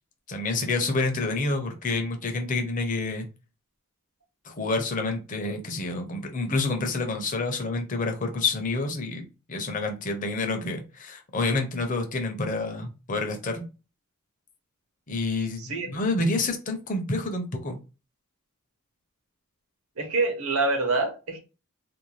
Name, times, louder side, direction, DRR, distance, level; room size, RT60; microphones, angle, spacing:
voice 1, 0.3-3.3 4.4-13.6 15.1-17.8, left 3 dB, 35° left, 0.6 m, -28 dB
voice 2, 15.6-15.9 20.0-21.4, right 3 dB, 65° right, 0.8 m, -26 dB
2.6 x 2.2 x 3.0 m
head